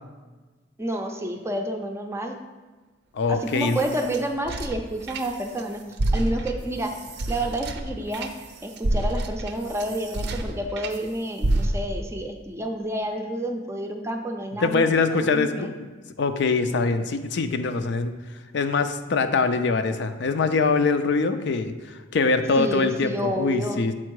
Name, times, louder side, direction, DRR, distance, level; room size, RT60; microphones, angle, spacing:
voice 1, 0.8-2.4 3.3-5.8 6.1-7.0 7.3-8.3 8.6-15.7 22.6-23.8, right 1 dB, 15° right, 4 dB, 0.5 m, -29 dB
voice 2, 3.1-3.8 14.6-15.7 16.2-18.1 18.5-21.7 22.1-23.9, left 4 dB, 60° left, 8 dB, 0.4 m, -23 dB
sound 1, 3.3-5.6 5.9-11.0 11.4-12.1, right 1 dB, 60° right, 0.5 m, -29 dB
7.5 x 4.4 x 4.7 m, 1.3 s
head